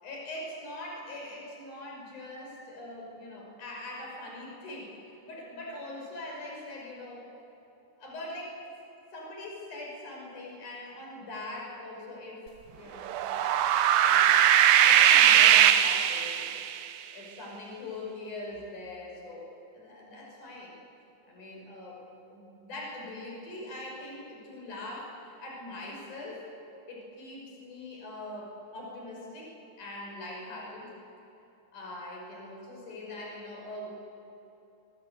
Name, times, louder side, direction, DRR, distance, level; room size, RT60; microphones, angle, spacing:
voice 1, 0.0-7.2 8.0-8.6 9.1-13.8 14.0-14.4 14.8-16.5 17.1-19.5 19.7-20.8 21.3-26.5 26.9-30.9 31.7-33.9, left 1 dB, 45° left, -2 dB, 7.2 m, -42 dB
sound 1, 13.0-16.8, right 10 dB, 75° right, 3.0 m, -20 dB
24.5 x 22.5 x 8.3 m, 2.9 s
omnidirectional pair, 5.1 m